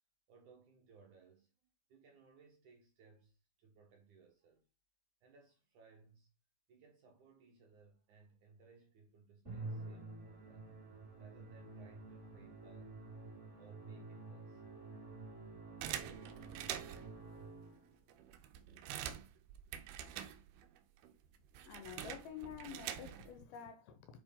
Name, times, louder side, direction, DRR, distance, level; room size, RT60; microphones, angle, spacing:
voice 1, 0.3-1.5 1.9-4.6 5.2-6.3 6.7-10.7 11.2-12.9 13.6-14.6, right 4 dB, 60° right, 2.3 m, -63 dB
Musical instrument, 9.4-18.0, right 3 dB, 15° right, 4.2 m, -50 dB
sound 1, 15.8-17.2 17.8-17.9 18.1-20.8 21.0-23.4, right 11 dB, 75° right, 2.5 m, -45 dB
voice 2, 21.6-24.2, left 8 dB, 75° left, 2.6 m, -49 dB
8.8 x 4.7 x 3.7 m
omnidirectional pair, 4.8 m